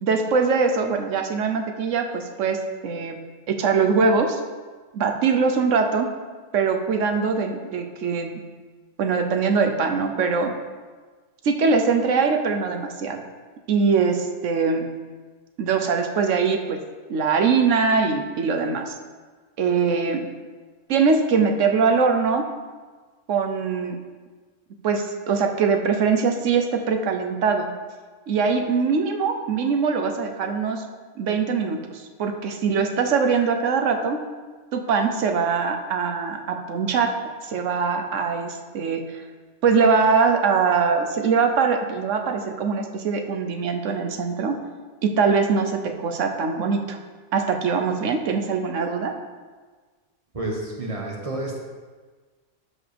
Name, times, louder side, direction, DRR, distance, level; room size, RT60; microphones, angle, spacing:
voice 1, 0.0-3.2 3.5-4.4 4.9-6.1 6.5-8.4 9.0-10.5 11.4-13.2 13.7-14.9 15.6-16.8 17.1-18.9 19.6-20.3 20.9-22.4 23.3-24.0 24.8-27.7 28.3-30.8 31.2-34.2 34.7-37.1 37.5-39.2 39.6-44.6 45.0-47.0 47.3-49.1, right 5 dB, 80° right, 5 dB, 1.1 m, -22 dB
voice 2, 50.3-51.6, right 2 dB, 30° right, -2 dB, 1.4 m, -30 dB
13.0 x 5.1 x 3.4 m, 1.4 s
omnidirectional pair, 1.3 m